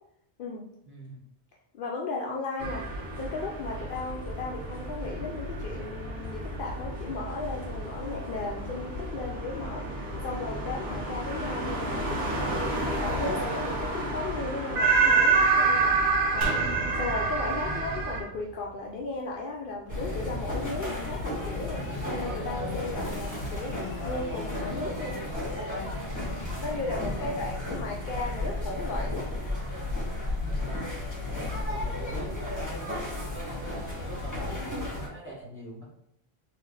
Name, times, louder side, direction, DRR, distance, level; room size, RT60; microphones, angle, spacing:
voice 1, 0.9-1.2 17.6-18.0 26.6-27.7 30.4-35.8, right 1 dB, 10° right, -7 dB, 1.3 m, -44 dB
voice 2, 1.7-2.9 3.2-21.8 22.2-25.5 26.6-29.8, left 3 dB, 60° left, -2 dB, 0.7 m, -36 dB
sound 1, 2.6-18.2, right 3 dB, 75° right, 1.2 m, -29 dB
sound 2, 16.4-19.7 20.0-20.1, right 1 dB, 90° right, 1.2 m, -37 dB
sound 3, 19.9-35.1, left 1 dB, 15° left, 1.4 m, -33 dB
3.1 x 2.9 x 3.8 m, 0.76 s
omnidirectional pair, 1.1 m